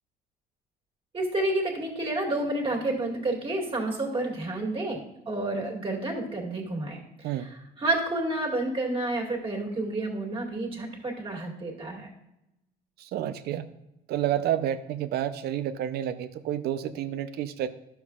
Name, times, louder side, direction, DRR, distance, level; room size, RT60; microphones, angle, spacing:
voice 1, 1.1-7.5 7.8-12.1, right 2 dB, 30° right, -1 dB, 2.2 m, -30 dB
voice 2, 13.0-13.7 14.1-17.7, right 11 dB, 70° right, 11 dB, 0.6 m, -29 dB
11.0 x 7.0 x 2.4 m, 0.87 s
cardioid pair, 110°, 17 cm